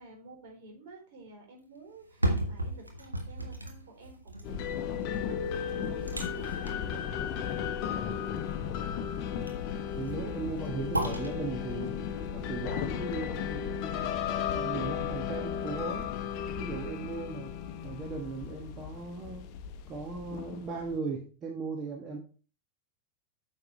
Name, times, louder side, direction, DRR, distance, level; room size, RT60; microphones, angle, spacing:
voice 1, 0.0-5.4 5.9-7.5, right 2 dB, 50° right, 1 dB, 4.1 m, -51 dB
sound 1, 1.9-14.0 14.4-14.5, right 1 dB, 85° right, 1.4 m, -37 dB
sound 2, 4.4-21.0, left 8 dB, 45° left, 0.8 m, -35 dB
voice 2, 9.9-12.0 12.3-14.1 14.5-16.1 16.6-17.5 17.8-19.5 19.9-22.2, right 4 dB, 30° right, 0 dB, 1.5 m, -37 dB
9.1 x 6.7 x 3.1 m, 0.38 s
figure-of-eight pair, 90°, 0 cm